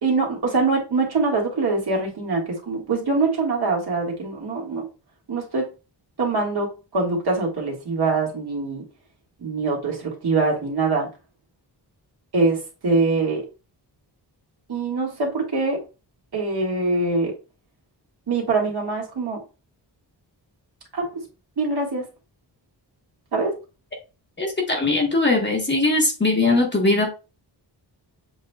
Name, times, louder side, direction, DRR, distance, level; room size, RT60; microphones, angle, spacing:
voice 1, 0.0-4.8 5.3-5.7 6.2-6.7 6.9-8.8 9.4-11.1 12.3-13.5 14.7-15.8 16.3-17.3 18.3-19.4 20.9-21.1 21.6-22.1 23.3-23.5, right 3 dB, 60° right, 1.8 m, -23 dB
voice 2, 24.4-27.1, left 2 dB, 25° left, 1.1 m, -20 dB
7.1 x 2.9 x 2.3 m
wide cardioid pair, 150°, 43 cm